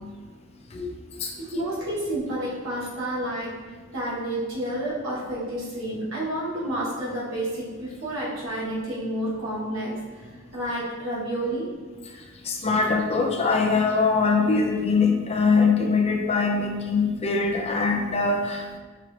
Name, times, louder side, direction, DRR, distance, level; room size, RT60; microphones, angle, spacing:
voice 1, 1.4-3.5 3.9-10.2 10.5-11.7, right 1 dB, 70° right, -7 dB, 1.5 m, -30 dB
voice 2, 12.5-18.8, left 4 dB, 30° left, 2 dB, 0.5 m, -22 dB
5.7 x 2.4 x 3.2 m, 1.4 s
head